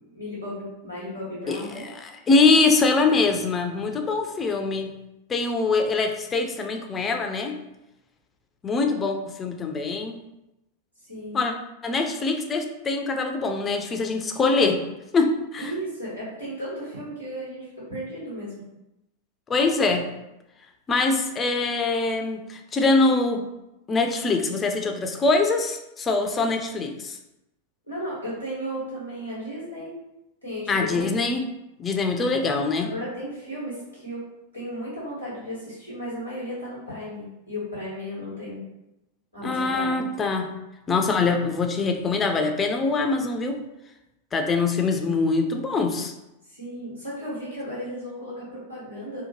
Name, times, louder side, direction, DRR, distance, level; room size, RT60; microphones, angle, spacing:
voice 1, 0.1-1.9 11.0-11.4 15.6-18.5 27.9-29.9 30.4-31.1 32.8-34.3 34.5-38.6 39.3-40.0 46.5-49.2, equal, 90° right, -9 dB, 1.5 m, -34 dB
voice 2, 1.5-4.9 5.3-7.6 8.6-10.1 11.3-11.5 11.8-14.8 15.1-15.7 19.5-20.1 20.9-23.4 23.9-27.2 30.7-31.4 31.8-32.9 39.4-40.5 40.9-43.6 44.3-46.1, left 3 dB, 20° left, 4 dB, 0.3 m, -23 dB
2.8 x 2.1 x 2.8 m, 0.92 s
figure-of-eight pair, 90°, 0 cm